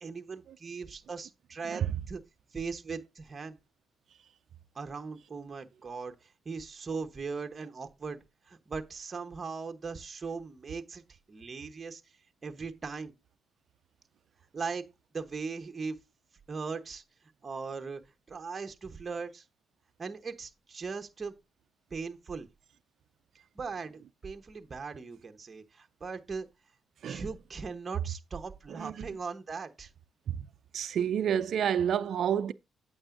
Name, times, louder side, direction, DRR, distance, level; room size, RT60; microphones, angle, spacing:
voice 1, 0.0-2.2 2.5-3.6 4.7-6.1 6.4-11.0 11.3-12.0 12.4-13.1 14.5-14.9 15.1-16.0 16.5-17.0 17.4-18.0 18.3-19.4 20.0-21.3 21.9-22.5 23.5-26.5 27.1-29.9, right 4 dB, 30° right, 1.0 m, -39 dB
voice 2, 30.7-32.5, right 9 dB, 65° right, 0.5 m, -29 dB
8.7 x 7.8 x 2.5 m
cardioid pair, 90°, 0 cm